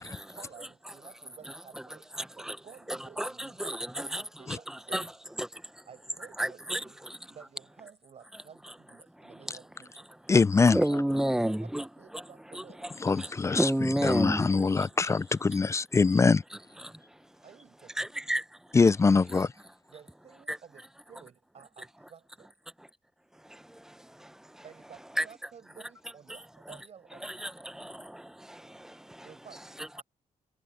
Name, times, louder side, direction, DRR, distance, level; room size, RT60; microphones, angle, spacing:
voice 1, 0.0-4.9 5.9-7.0 7.3-10.1 10.5-11.7 12.0-12.9 13.5-13.6 14.0-15.0 17.4-18.1 19.9-22.5 24.6-27.5 29.2-30.0, right 7 dB, 55° right, 6.2 m, -53 dB
voice 2, 2.2-2.6 2.9-4.2 4.7-5.1 5.4-5.8 6.4-7.3 9.2-9.4 10.7-11.9 12.1-12.2 12.5-14.5 16.8-17.2 18.0-18.8 19.3-19.4 20.5-20.6 23.4-24.6 25.2-25.3 27.2-29.3 29.8-30.0, right 1 dB, 5° right, 0.8 m, -32 dB
voice 3, 10.3-10.8 13.0-13.7 14.0-16.4 18.7-19.5, left 4 dB, 20° left, 0.3 m, -23 dB
wide cardioid pair, 130°, 13 cm